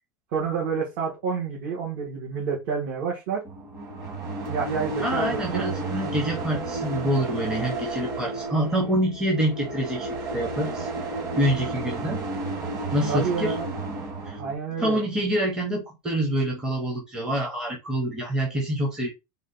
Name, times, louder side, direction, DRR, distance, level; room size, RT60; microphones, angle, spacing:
voice 1, 0.3-3.4 4.5-5.6 13.1-13.7 14.4-15.0, right 6 dB, 55° right, 1.4 m, -28 dB
sound 1, 3.5-14.5, right 2 dB, 25° right, 1.4 m, -32 dB
voice 2, 5.0-10.9 11.4-12.2 12.9-13.5 14.3-14.4 14.8-19.1, right 1 dB, 5° right, 0.6 m, -26 dB
3.7 x 2.3 x 3.8 m
supercardioid pair, 175°, 12 cm